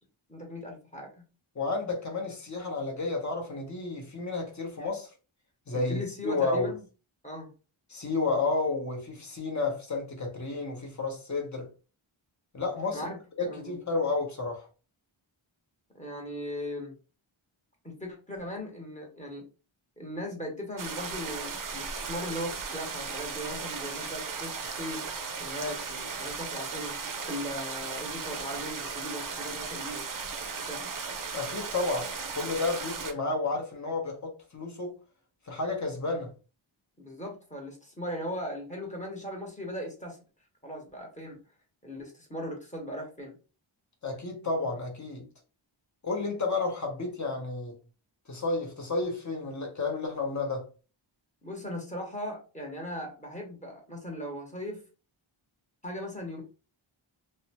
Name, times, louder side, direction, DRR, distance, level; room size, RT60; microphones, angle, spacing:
voice 1, 0.3-1.2 5.7-6.8 7.2-7.5 12.9-13.7 15.9-17.0 17.8-19.4 20.0-25.0 25.4-27.0 27.3-30.1 30.6-31.0 37.0-40.2 40.6-41.4 41.8-43.4 51.4-54.8 55.8-56.4, equal, 15° left, 1.1 m, -38 dB
voice 2, 1.5-5.1 5.7-6.7 7.9-11.7 12.5-13.1 13.4-14.7 31.3-35.0 35.5-36.3 44.0-45.3 46.0-47.7 48.3-50.7, left 3 dB, 35° left, 0.9 m, -31 dB
sound 1, 20.8-33.1, right 5 dB, 45° right, 0.5 m, -36 dB
2.8 x 2.1 x 2.8 m
wide cardioid pair, 50°, 49 cm